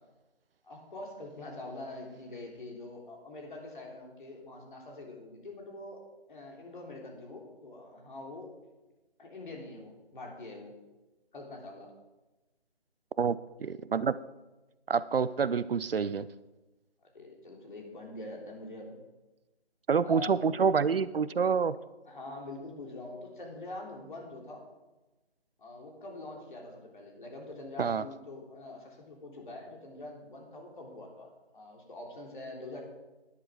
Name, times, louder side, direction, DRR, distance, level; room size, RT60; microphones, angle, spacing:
voice 1, 0.6-6.0 6.3-8.5 9.2-10.7 11.3-11.9 17.1-18.9 20.0-20.4 20.7-20.9 22.0-24.6 25.6-32.8, left 2 dB, 50° left, 0 dB, 3.3 m, -44 dB
voice 2, 13.2-14.2 14.9-16.3 19.9-21.8 27.8-28.0, right 6 dB, 65° right, 17 dB, 0.5 m, -27 dB
11.5 x 10.5 x 4.9 m, 1.1 s
figure-of-eight pair, 160°, 32 cm